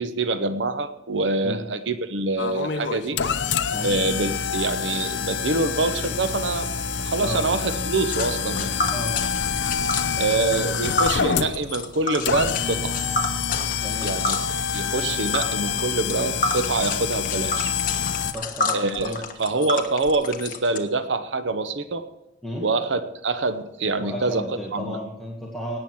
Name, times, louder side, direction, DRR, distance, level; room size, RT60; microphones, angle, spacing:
voice 1, 0.0-3.2 3.8-6.7 7.0-8.7 10.2-13.0 14.0-14.4 14.7-17.7 18.7-19.1 19.4-22.0 22.6-24.5 24.7-25.0, right 3 dB, 80° right, 10 dB, 0.8 m, -25 dB
sound 1, 2.4-18.3, left 6 dB, 75° left, 0.7 m, -27 dB
Tick, 8.1-20.8, left 3 dB, 50° left, 1.3 m, -30 dB
voice 2, 13.8-14.1 18.2-19.2 22.4-22.6 24.0-25.8, equal, ahead, -4 dB, 1.8 m, -33 dB
17.5 x 8.9 x 4.6 m, 0.90 s
head